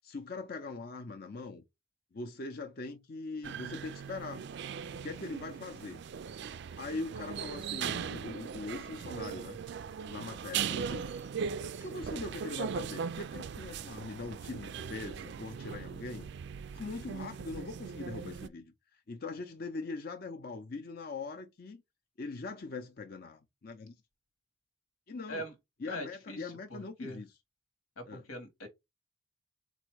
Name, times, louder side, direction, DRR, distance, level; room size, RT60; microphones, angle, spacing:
voice 1, 0.0-1.6 2.1-4.5 4.9-6.0 6.8-9.6 10.1-11.1 11.8-16.3 16.7-18.7 19.1-21.8 22.2-23.9 25.1-25.5 25.8-27.3 28.1-28.2, left 3 dB, 45° left, 0.5 m, -41 dB
sound 1, 3.4-18.5, right 7 dB, 55° right, 0.3 m, -39 dB
voice 2, 25.9-27.2 28.0-28.7, left 1 dB, 90° left, 1.4 m, -42 dB
4.1 x 2.5 x 4.6 m
head